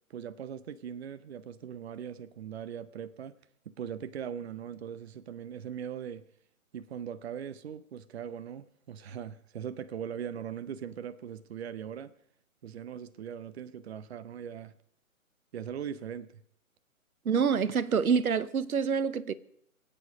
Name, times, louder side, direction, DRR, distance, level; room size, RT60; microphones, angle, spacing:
voice 1, 0.1-3.4 3.7-6.2 6.7-12.1 12.6-14.7 15.5-16.4, right 8 dB, 50° right, 0.7 m, -40 dB
voice 2, 17.2-19.3, right 6 dB, 80° right, 0.9 m, -26 dB
23.5 x 8.6 x 5.0 m
figure-of-eight pair, 135°, 43 cm